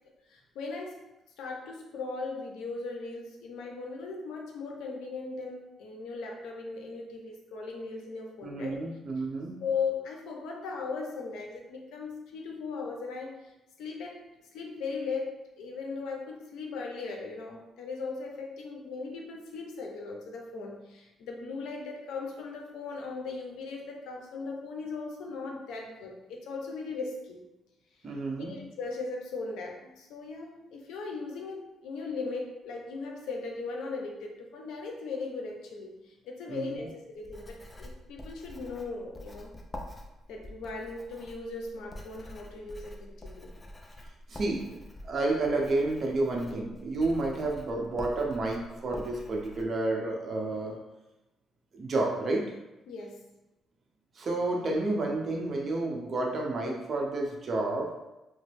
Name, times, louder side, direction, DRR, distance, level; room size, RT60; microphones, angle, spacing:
voice 1, 0.3-1.0 1.4-8.8 9.6-13.5 13.8-14.2 14.5-27.4 28.1-39.5 40.3-43.6 52.9-53.2, left 4 dB, 85° left, 1 dB, 0.6 m, -38 dB
voice 2, 8.4-9.6 28.0-28.6 36.5-36.9 44.3-44.7 45.0-50.8 51.7-52.5 54.2-57.9, right 2 dB, 45° right, 0 dB, 0.7 m, -30 dB
Writing, 37.2-49.6, left 1 dB, 20° left, 0.5 m, -46 dB
3.0 x 2.1 x 3.2 m, 0.99 s
cardioid pair, 90°, 0 cm